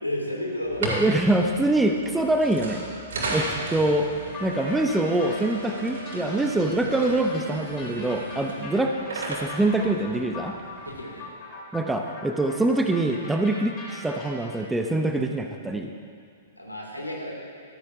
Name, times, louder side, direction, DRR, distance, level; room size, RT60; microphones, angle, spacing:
voice 1, 0.0-0.9 8.4-8.6 10.8-11.3 16.6-17.3, left 1 dB, 90° left, -2 dB, 2.6 m, -32 dB
sound 1, 0.6-10.9, right 2 dB, 60° right, 2.9 m, -35 dB
voice 2, 0.8-2.8 3.3-4.1 4.4-10.6 11.7-15.9, right 2 dB, 5° right, 4 dB, 0.7 m, -24 dB
sound 2, 4.3-14.6, left 3 dB, 25° left, 3.0 m, -41 dB
14.5 x 13.0 x 2.7 m, 2.2 s
figure-of-eight pair, 110°, 0 cm